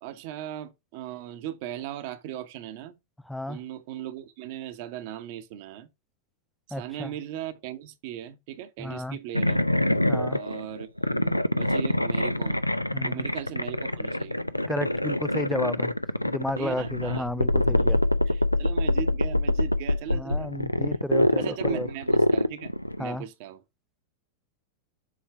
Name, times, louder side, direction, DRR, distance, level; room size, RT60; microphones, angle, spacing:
voice 1, 0.0-3.0 3.5-5.9 6.7-9.6 10.3-12.6 13.0-14.4 16.6-17.3 17.7-18.0 18.3-20.5 21.4-22.7 23.0-23.6, right 11 dB, 50° right, 1.0 m, -38 dB
voice 2, 3.3-3.6 6.7-7.1 8.8-9.2 10.1-10.4 12.9-13.3 14.7-15.9 16.3-18.0 20.1-21.9 23.0-23.3, left 1 dB, 5° left, 0.3 m, -32 dB
sound 1, 9.3-23.1, left 1 dB, 85° left, 0.3 m, -25 dB
7.6 x 3.2 x 4.7 m
figure-of-eight pair, 90°, 0 cm